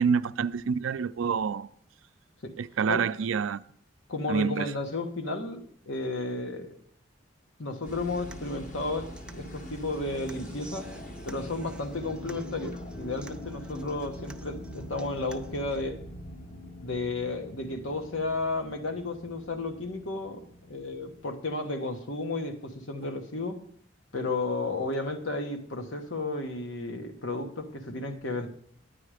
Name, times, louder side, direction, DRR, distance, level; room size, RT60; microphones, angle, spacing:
voice 1, 0.0-1.7 2.6-3.6 4.3-4.7, right 6 dB, 85° right, 0.4 m, -27 dB
voice 2, 4.1-6.8 7.6-9.1 9.3-10.9 11.3-16.0 16.8-20.4 20.7-23.6 24.1-28.5, left 2 dB, 70° left, 1.2 m, -33 dB
sound 1, 7.8-21.2, left 1 dB, 40° left, 1.0 m, -44 dB
Human voice / Acoustic guitar, 7.8-15.8, equal, 5° right, 0.5 m, -48 dB
10.0 x 9.7 x 4.9 m
head